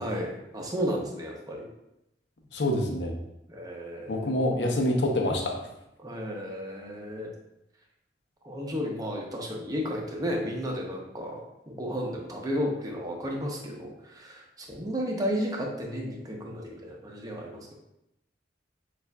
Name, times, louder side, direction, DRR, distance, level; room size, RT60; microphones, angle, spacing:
voice 1, 0.0-1.7 3.5-4.4 6.0-7.3 8.4-17.7, equal, 20° right, 0 dB, 0.7 m, -33 dB
voice 2, 2.5-3.2 4.1-5.6, left 1 dB, 75° left, 1 dB, 0.7 m, -26 dB
6.9 x 2.5 x 2.2 m, 0.86 s
head